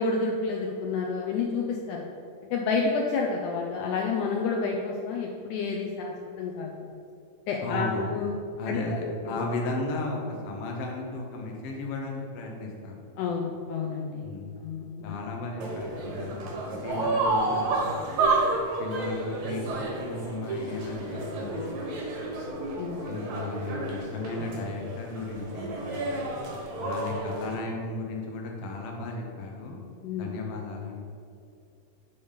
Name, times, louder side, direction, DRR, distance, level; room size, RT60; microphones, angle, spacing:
voice 1, 0.0-2.0 2.5-6.7 7.5-8.3 8.7-9.5 13.2-14.2 14.6-15.2 22.8-23.1 30.0-30.3, left 4 dB, 80° left, 0 dB, 1.9 m, -29 dB
voice 2, 7.6-8.2 8.6-13.0 14.2-14.5 15.0-17.9 18.8-21.7 23.0-26.2 26.8-29.8 30.2-31.0, left 2 dB, 65° left, 0 dB, 1.6 m, -35 dB
sound 1, 15.6-27.5, right 2 dB, 80° right, 3.1 m, -30 dB
6.9 x 5.1 x 5.6 m, 2.4 s
omnidirectional pair, 4.0 m